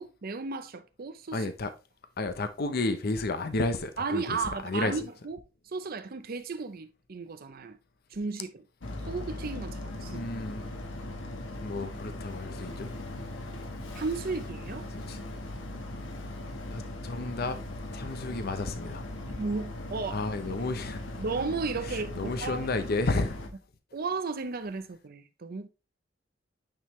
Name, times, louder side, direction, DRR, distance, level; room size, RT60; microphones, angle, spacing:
voice 1, 0.0-1.4 4.0-7.8 8.1-8.6 9.1-10.2 13.9-14.9 19.4-20.2 21.2-22.7 23.9-25.7, right 4 dB, 50° right, 0.6 m, -34 dB
voice 2, 1.3-1.7 2.2-4.4 4.6-4.9 10.0-10.7 11.6-12.9 14.9-15.2 16.7-17.6 17.9-19.0 20.1-21.2 21.8-23.4, left 2 dB, 55° left, 0.7 m, -32 dB
Boat Water vehicle, 8.8-23.5, left 1 dB, 90° left, 1.2 m, -39 dB
8.8 x 3.6 x 3.1 m
head